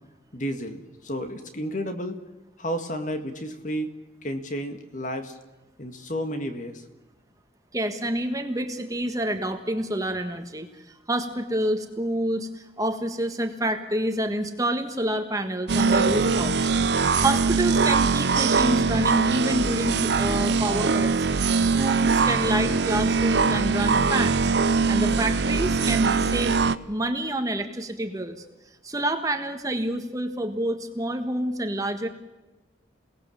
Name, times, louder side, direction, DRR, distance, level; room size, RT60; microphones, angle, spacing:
voice 1, 0.3-2.2 2.6-3.9 4.2-5.4 5.8-6.8, equal, 45° left, 7 dB, 2.0 m, -31 dB
voice 2, 7.7-10.7 11.1-16.7 17.2-21.3 21.8-24.5 24.9-26.5 26.9-28.4 28.8-32.1, right 1 dB, 20° right, 7 dB, 1.5 m, -28 dB
sound 1, 15.7-26.8, right 4 dB, 65° right, 0.7 m, -22 dB
28.0 x 18.5 x 7.3 m, 1.1 s
head